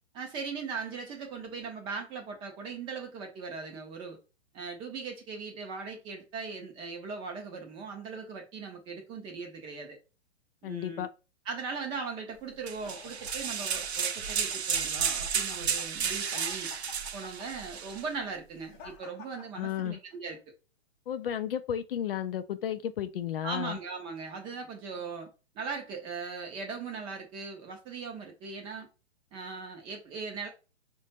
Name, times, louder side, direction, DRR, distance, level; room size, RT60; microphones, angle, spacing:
voice 1, 0.1-4.2 4.5-10.0 10.6-11.0 11.5-16.7 17.1-20.4 23.4-28.9 29.3-30.5, right 4 dB, 15° right, 0.5 m, -39 dB
voice 2, 10.6-11.1 19.6-20.0 21.1-23.8, left 10 dB, 55° left, 0.4 m, -33 dB
sound 1, 12.7-20.2, left 5 dB, 25° left, 0.7 m, -51 dB
sound 2, 12.7-18.1, right 7 dB, 70° right, 0.6 m, -32 dB
4.9 x 2.2 x 2.8 m
figure-of-eight pair, 125°, 33 cm